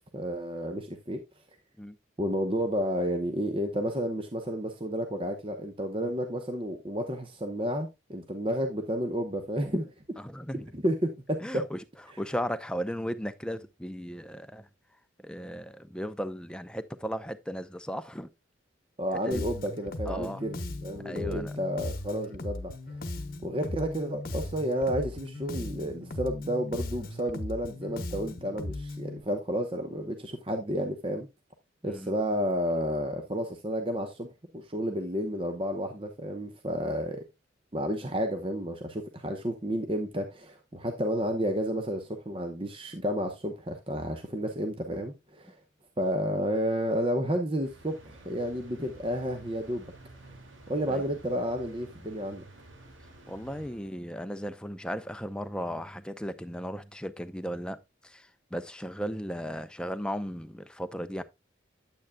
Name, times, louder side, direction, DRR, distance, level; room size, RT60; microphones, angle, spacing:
voice 1, 0.1-1.2 2.2-9.9 10.7-11.6 19.0-22.7 23.4-31.3 31.8-34.3 34.5-37.2 37.7-45.6 46.0-49.8 50.7-52.4, equal, 25° right, 0.9 m, -31 dB
voice 2, 10.2-10.7 11.4-11.8 12.2-14.7 15.2-18.3 19.2-19.4 20.1-20.4 21.0-21.5 31.9-32.1 50.9-51.0 53.3-61.2, equal, 5° left, 0.5 m, -36 dB
Bass guitar, 19.3-29.2, left 2 dB, 45° left, 1.0 m, -37 dB
sound 1, 47.6-54.3, right 2 dB, 80° right, 2.3 m, -51 dB
9.3 x 8.8 x 2.2 m
head